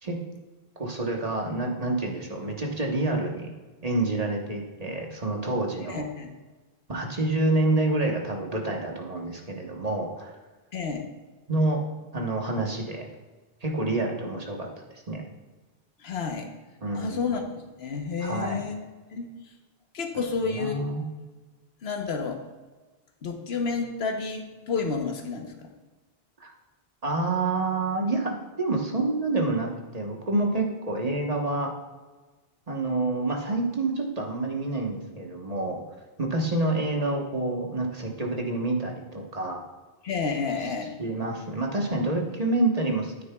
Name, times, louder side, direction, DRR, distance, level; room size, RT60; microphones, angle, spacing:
voice 1, 0.8-3.5 3.8-6.0 6.9-10.3 11.5-11.8 12.1-13.0 13.6-15.2 16.8-17.3 18.2-18.6 20.1-21.0 26.4-26.5 27.0-28.3 28.6-31.7 32.7-35.8 36.2-39.6 41.0-43.2, right 2 dB, 40° right, 0 dB, 1.3 m, -28 dB
voice 2, 5.8-6.4 10.7-11.1 16.0-16.5 16.9-17.4 17.8-18.8 19.1-19.3 19.9-20.8 21.8-22.4 23.2-25.7 40.0-40.9, left 5 dB, 80° left, 4 dB, 1.2 m, -30 dB
9.7 x 9.4 x 2.3 m, 1.3 s
omnidirectional pair, 1.0 m